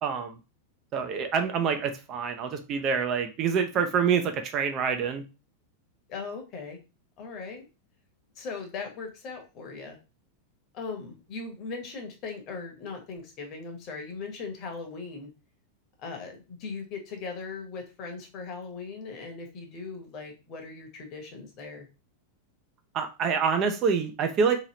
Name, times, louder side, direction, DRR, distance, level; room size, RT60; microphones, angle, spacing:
voice 1, 0.0-0.4 0.9-5.2 22.9-24.6, right 6 dB, 35° right, 6 dB, 0.5 m, -26 dB
voice 2, 6.1-6.8 7.2-7.7 8.4-10.0 10.7-15.3 16.0-21.9, left 4 dB, 40° left, 3 dB, 0.9 m, -39 dB
2.9 x 2.7 x 2.9 m, 0.30 s
figure-of-eight pair, 90°, 0 cm